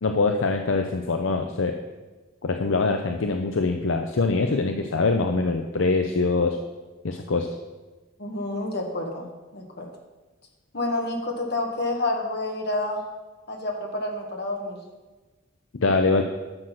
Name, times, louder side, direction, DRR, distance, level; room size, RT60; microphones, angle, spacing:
voice 1, 0.0-1.7 2.4-6.6 7.0-7.5 15.8-16.2, left 3 dB, 75° left, 5 dB, 0.7 m, -23 dB
voice 2, 8.2-9.9 10.7-13.0 13.5-14.8, left 2 dB, 55° left, 1 dB, 1.9 m, -29 dB
11.5 x 6.4 x 6.0 m, 1.2 s
head